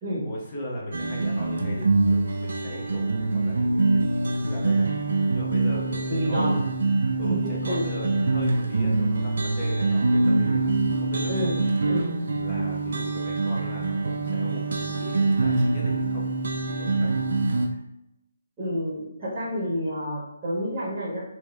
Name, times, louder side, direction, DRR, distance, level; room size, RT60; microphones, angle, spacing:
voice 1, 0.2-6.6 7.2-11.3 12.4-16.3 16.8-17.1, equal, 25° left, -4 dB, 0.9 m, -37 dB
sound 1, 0.9-17.7, right 3 dB, 60° right, 0.4 m, -24 dB
voice 2, 6.1-6.5 7.4-7.9 11.3-11.6 11.8-12.0 18.6-21.2, equal, 20° right, -10 dB, 1.2 m, -28 dB
3.1 x 2.7 x 2.3 m, 0.85 s
figure-of-eight pair, 145°, 0 cm